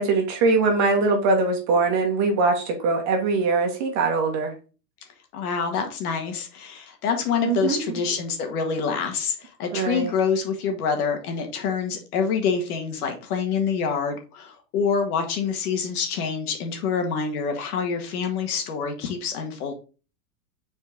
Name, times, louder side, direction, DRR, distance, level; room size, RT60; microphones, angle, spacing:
voice 1, 0.0-4.5 7.4-7.8 9.7-10.1, right 3 dB, 35° right, 3 dB, 1.8 m, -22 dB
voice 2, 5.3-19.7, left 6 dB, 65° left, 5 dB, 1.8 m, -26 dB
5.8 x 4.5 x 3.8 m, 0.33 s
supercardioid pair, 150°, 49 cm